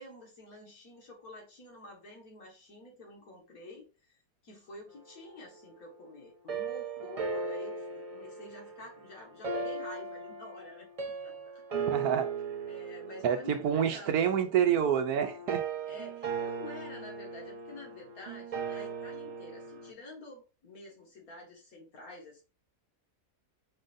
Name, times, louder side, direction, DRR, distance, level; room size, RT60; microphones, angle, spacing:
voice 1, 0.0-3.9 4.4-10.9 11.2-12.1 12.7-14.4 15.9-22.4, left 1 dB, 60° left, 1.9 m, -49 dB
sound 1, 6.5-19.9, right 5 dB, 55° right, 0.4 m, -38 dB
voice 2, 11.9-12.3 13.2-15.6, right 8 dB, 70° right, 1.0 m, -27 dB
4.7 x 3.8 x 2.5 m
omnidirectional pair, 1.7 m